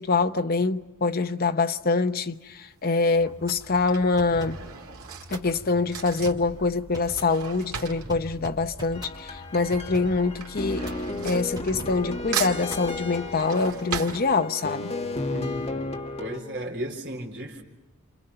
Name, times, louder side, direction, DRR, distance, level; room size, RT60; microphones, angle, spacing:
voice 1, 0.0-4.6 5.3-10.9 11.2-14.9, left 3 dB, 45° left, 0.8 m, -25 dB
Drawer open or close / Cutlery silverware, 2.3-2.7 3.5-9.4 9.7-12.1 12.3-14.9 15.3-15.4 15.6-15.7, right 7 dB, 85° right, 2.3 m, -37 dB
sound 1, 3.1-13.3, right 1 dB, 20° right, 5.8 m, -43 dB
sound 2, 8.9-16.4, left 2 dB, 30° left, 1.8 m, -34 dB
voice 2, 15.3-15.8 16.2-17.6, right 1 dB, 50° right, 4.0 m, -35 dB
30.0 x 27.5 x 5.6 m
head